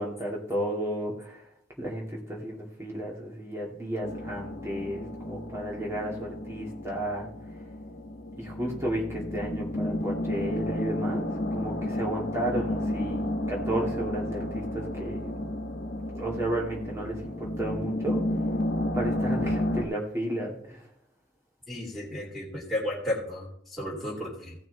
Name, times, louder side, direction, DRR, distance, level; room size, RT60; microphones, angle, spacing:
voice 1, 0.0-1.5 1.8-7.3 8.4-15.3 16.1-18.2 18.9-20.9, right 1 dB, 15° right, -3 dB, 2.3 m, -33 dB
sound 1, 4.0-19.8, left 1 dB, 90° left, 1.3 m, -32 dB
voice 2, 21.7-24.5, left 1 dB, ahead, -7 dB, 3.0 m, -33 dB
16.0 x 6.0 x 4.0 m, 0.70 s
head